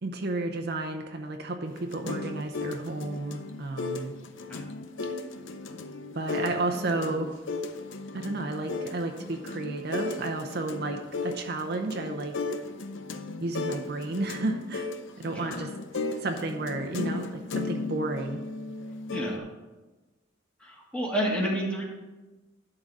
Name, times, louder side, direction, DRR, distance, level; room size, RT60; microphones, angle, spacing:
voice 1, 0.0-4.1 6.1-7.4 8.1-12.4 13.4-14.9 15.2-15.7 16.2-18.4, right 2 dB, 55° right, 4 dB, 0.7 m, -32 dB
sound 1, 1.7-19.4, left 3 dB, 70° left, 0.6 m, -36 dB
voice 2, 19.1-19.4 20.6-21.8, equal, 5° left, -3 dB, 1.6 m, -29 dB
11.5 x 3.9 x 6.1 m, 1.2 s
head